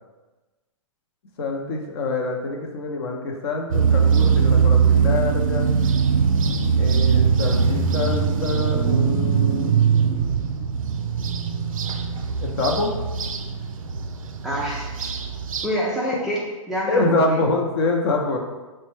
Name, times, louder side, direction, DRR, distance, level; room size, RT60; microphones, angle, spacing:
voice 1, 1.4-5.7 6.8-9.8 11.2-11.3 12.4-12.9 16.9-18.4, left 2 dB, 50° left, 2 dB, 0.6 m, -25 dB
sound 1, 3.7-15.7, right 6 dB, 80° right, 0.4 m, -21 dB
voice 2, 14.4-15.1 15.6-17.4, equal, 5° right, -6 dB, 0.3 m, -27 dB
4.2 x 2.2 x 3.2 m, 1.2 s
hypercardioid pair, 125°, 17 cm